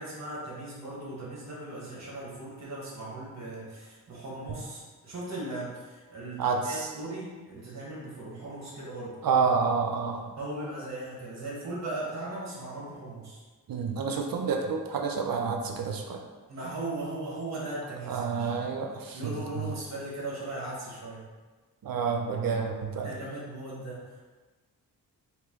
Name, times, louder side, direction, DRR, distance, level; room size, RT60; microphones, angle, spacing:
voice 1, 0.0-9.2 10.4-13.4 16.5-18.5 19.1-21.2 23.0-24.2, right 2 dB, 40° right, -6 dB, 1.4 m, -38 dB
voice 2, 6.4-6.9 9.2-10.2 13.7-16.2 18.1-19.7 21.8-23.1, right 5 dB, 55° right, 2 dB, 0.6 m, -29 dB
3.0 x 2.6 x 3.6 m, 1.3 s
cardioid pair, 55°, 42 cm